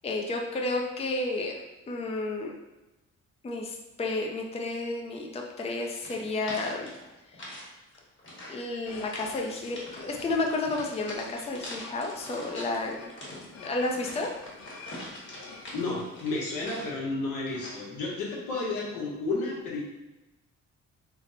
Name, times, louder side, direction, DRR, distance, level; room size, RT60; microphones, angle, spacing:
voice 1, 0.0-2.5 3.4-6.9 7.4-7.6 8.5-13.1 13.6-14.3, left 2 dB, 20° left, 1 dB, 0.4 m, -31 dB
sound 1, 6.0-7.7 7.9-8.6 9.0-9.3 9.7-10.2 10.7-12.8 13.1-17.1 17.5-17.9, left 1 dB, 40° left, 1.3 m, -43 dB
sound 2, 8.8-16.8, left 3 dB, 60° left, 0.7 m, -49 dB
voice 2, 15.4-19.8, left 3 dB, 85° left, -4 dB, 1.1 m, -32 dB
3.3 x 2.1 x 3.9 m, 1.1 s
cardioid pair, 90°, 30 cm